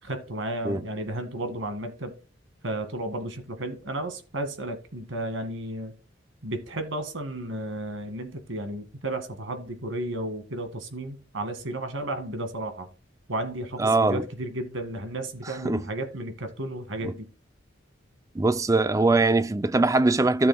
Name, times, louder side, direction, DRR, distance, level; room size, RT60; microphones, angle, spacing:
voice 1, 0.0-2.1 2.6-5.9 6.4-12.9 13.3-17.3, right 1 dB, 85° right, 1.8 m, -33 dB
voice 2, 13.8-14.2 15.6-15.8 18.4-20.5, right 3 dB, 15° right, 0.3 m, -21 dB
14.0 x 6.9 x 2.2 m
head